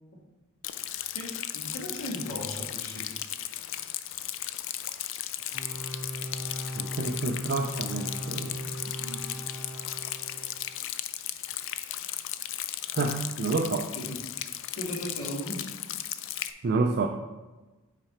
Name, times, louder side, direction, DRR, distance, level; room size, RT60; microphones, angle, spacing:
Rain, 0.6-16.5, left 12 dB, 60° left, 0.4 m, -36 dB
voice 1, 1.1-3.1 8.8-9.2 13.9-14.2 14.8-15.7, equal, 80° left, -3 dB, 1.8 m, -37 dB
sound 1, 5.5-10.8, equal, 5° left, 1.4 m, -38 dB
voice 2, 6.8-8.6 12.9-13.9 16.6-17.1, right 3 dB, 50° right, 4 dB, 0.4 m, -29 dB
6.0 x 4.8 x 4.3 m, 1.2 s
head